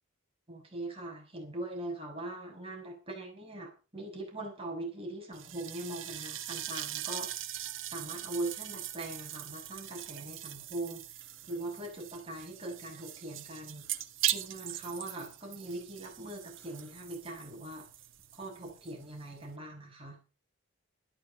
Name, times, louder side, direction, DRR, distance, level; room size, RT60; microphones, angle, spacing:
voice 1, 0.5-7.6 7.9-13.9 14.3-17.9 18.3-20.2, right 2 dB, 25° right, 0 dB, 6.0 m, -41 dB
sound 1, 5.3-19.6, right 12 dB, 70° right, 1.7 m, -40 dB
14.0 x 12.5 x 5.3 m, 0.34 s
head